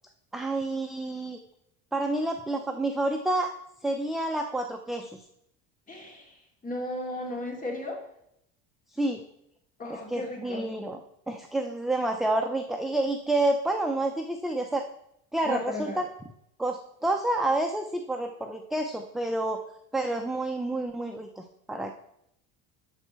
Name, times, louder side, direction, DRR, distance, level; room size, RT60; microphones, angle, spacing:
voice 1, 0.3-1.4 1.9-3.5 3.8-5.2 8.9-9.2 9.9-11.0 11.3-14.8 15.3-16.1 16.6-19.6 19.9-21.9, right 2 dB, ahead, 4 dB, 0.6 m, -29 dB
voice 2, 5.9-6.3 6.6-8.0 9.8-10.7 15.4-16.0, left 2 dB, 25° left, 0 dB, 2.8 m, -34 dB
11.0 x 4.2 x 6.8 m, 0.76 s
supercardioid pair, 120°, 35 cm